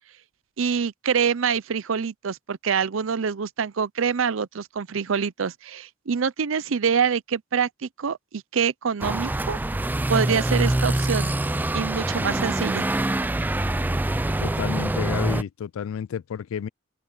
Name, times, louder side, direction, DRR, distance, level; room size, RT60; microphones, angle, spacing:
voice 1, 0.6-9.6 10.1-11.3 11.7-12.9, right 6 dB, 75° right, 0.6 m, -25 dB
sound 1, 9.0-15.4, right 1 dB, 10° right, 0.3 m, -25 dB
voice 2, 14.4-16.7, left 8 dB, 80° left, 0.3 m, -31 dB
open air
head